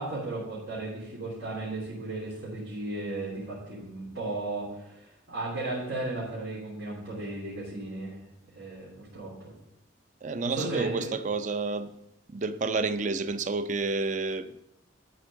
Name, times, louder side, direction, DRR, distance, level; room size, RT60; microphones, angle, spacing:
voice 1, 0.0-8.2 8.5-9.5 10.4-11.1, right 2 dB, 85° right, 3.3 m, -35 dB
voice 2, 10.2-11.9 12.3-14.5, right 3 dB, 40° right, 0.5 m, -30 dB
12.0 x 4.5 x 6.2 m
head